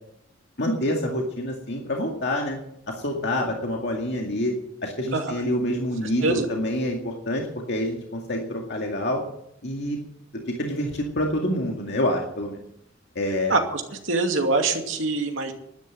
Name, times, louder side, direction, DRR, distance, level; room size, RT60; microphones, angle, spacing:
voice 1, 0.6-2.6 2.9-4.5 4.8-9.2 9.6-10.0 10.6-12.6 13.2-13.5, left 1 dB, 55° left, 1 dB, 2.2 m, -27 dB
voice 2, 13.5-15.5, right 3 dB, 75° right, 3 dB, 2.5 m, -24 dB
12.5 x 10.5 x 9.1 m, 0.77 s
head